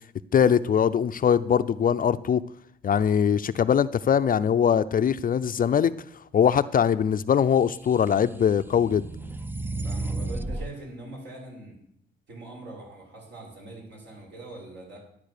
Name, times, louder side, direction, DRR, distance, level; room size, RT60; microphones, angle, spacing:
voice 1, 0.3-2.4 2.8-5.9 6.3-9.1, left 8 dB, 45° left, 12 dB, 0.6 m, -22 dB
sound 1, 7.8-10.7, right 2 dB, 10° right, 0.7 m, -33 dB
voice 2, 9.8-11.8 12.3-15.0, right 2 dB, 65° right, -1 dB, 6.2 m, -42 dB
12.5 x 8.9 x 6.7 m, 0.70 s
cardioid pair, 90°, 20 cm